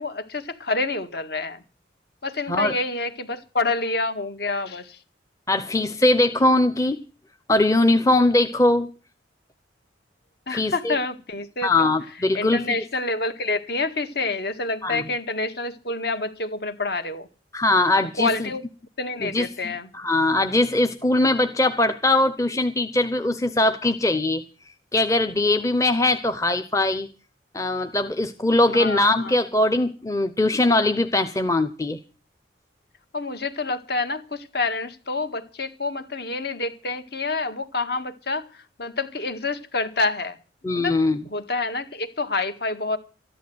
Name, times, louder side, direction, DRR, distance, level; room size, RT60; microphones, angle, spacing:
voice 1, 0.0-1.6 2.2-5.0 10.5-11.9 12.3-17.3 18.2-18.6 19.0-19.9 28.7-29.4 33.1-38.5 38.8-40.4 40.7-41.0 41.3-43.0, left 3 dB, 55° left, 1.9 m, -27 dB
voice 2, 5.5-7.0 7.5-8.9 10.5-11.0 11.6-12.6 14.8-15.0 17.5-18.5 19.2-24.4 24.9-27.1 27.5-32.0 40.6-41.2, left 2 dB, 15° left, 0.8 m, -21 dB
14.0 x 11.0 x 7.9 m
head